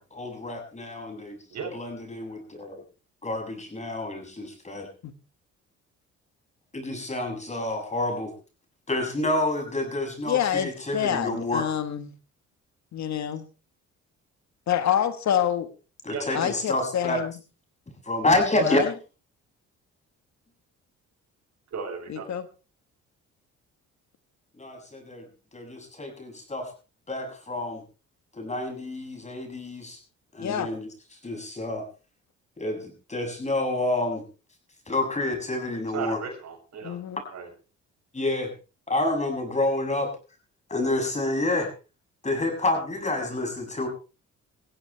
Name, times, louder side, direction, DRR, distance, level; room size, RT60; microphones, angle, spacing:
voice 1, 0.0-1.4 1.7-2.8 3.2-4.9 6.7-8.3 8.9-11.6 16.0-17.2 18.0-18.8 24.6-25.3 25.5-26.7 27.1-27.8 28.4-30.0 30.3-30.9 31.2-31.8 32.6-34.2 34.9-36.2 38.1-38.5 38.9-40.1 40.7-41.7 42.2-43.9, left 2 dB, 25° left, 3 dB, 7.5 m, -28 dB
voice 2, 10.3-12.1 12.9-13.5 14.7-15.7 16.3-17.3 18.6-18.9 22.1-22.4 30.4-30.7 36.8-37.2, left 9 dB, 65° left, 10 dB, 1.6 m, -27 dB
voice 3, 16.1-16.5 21.7-22.3 35.9-37.0 37.3-37.5, right 5 dB, 65° right, 1 dB, 7.7 m, -35 dB
21.0 x 15.5 x 3.4 m, 0.34 s
cardioid pair, 90°, 30 cm